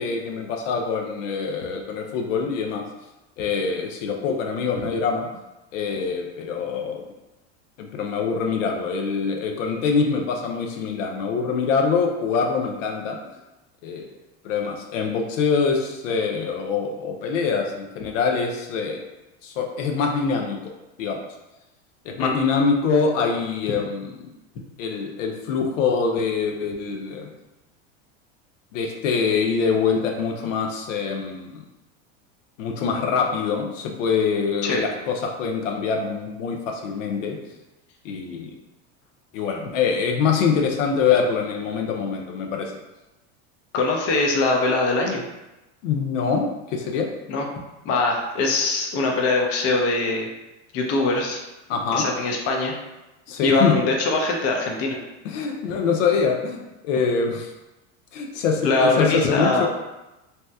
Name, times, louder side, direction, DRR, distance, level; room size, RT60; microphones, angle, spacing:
voice 1, 0.0-2.8 3.4-5.3 5.7-7.0 7.8-13.2 13.8-14.1 14.4-19.0 19.4-20.7 21.0-21.2 22.1-24.3 24.8-27.3 28.7-31.6 32.6-37.4 38.0-38.5 39.3-42.7 45.8-47.1 51.7-52.0 53.3-53.8 55.2-57.5 58.1-59.7, left 5 dB, 85° left, 2 dB, 0.6 m, -24 dB
voice 2, 43.7-45.2 47.3-47.5 47.9-50.3 50.7-51.4 51.9-52.7 53.4-55.0 58.6-59.7, left 3 dB, 40° left, 1 dB, 0.6 m, -22 dB
2.8 x 2.1 x 3.3 m, 1.0 s
supercardioid pair, 125°, 37 cm